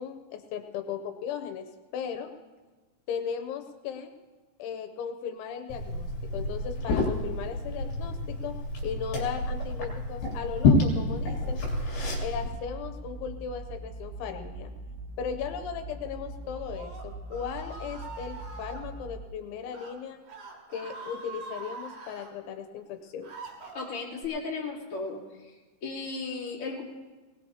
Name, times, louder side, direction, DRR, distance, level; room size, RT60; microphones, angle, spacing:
voice 1, 0.0-1.7 1.9-2.3 3.1-4.1 4.6-8.5 8.8-11.6 12.2-14.7 15.2-20.2 20.7-23.4, left 7 dB, 85° left, 6 dB, 3.2 m, -37 dB
Liquid, 5.7-12.5, left 2 dB, 60° left, 4.5 m, -28 dB
sound 1, 12.4-19.3, right 2 dB, 80° right, 3.1 m, -42 dB
Screaming, 16.4-18.8 19.6-19.9 20.2-22.3 22.9-24.3, right 3 dB, 55° right, 4.9 m, -44 dB
voice 2, 23.7-25.2 25.8-26.8, left 4 dB, 35° left, -6 dB, 3.3 m, -35 dB
21.0 x 18.5 x 2.8 m, 1.3 s
omnidirectional pair, 5.3 m